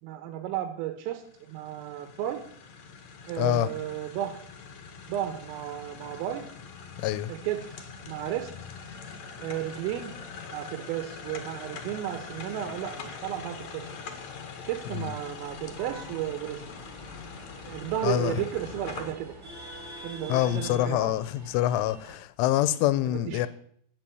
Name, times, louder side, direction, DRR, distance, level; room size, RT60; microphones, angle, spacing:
voice 1, 0.0-1.2 1.5-2.4 3.2-4.4 5.1-6.5 7.3-8.5 9.4-10.1 10.5-13.9 14.7-16.6 17.7-19.4 20.0-21.1 23.1-23.5, right 12 dB, 85° right, 3.8 m, -33 dB
sound 1, 1.1-19.1, left 5 dB, 60° left, 1.8 m, -43 dB
voice 2, 3.4-3.7 7.0-7.3 15.0-15.1 18.0-18.4 20.3-23.5, left 13 dB, 80° left, 3.1 m, -26 dB
sound 2, 15.4-22.2, equal, 25° right, 2.9 m, -46 dB
11.5 x 9.2 x 9.2 m
omnidirectional pair, 5.8 m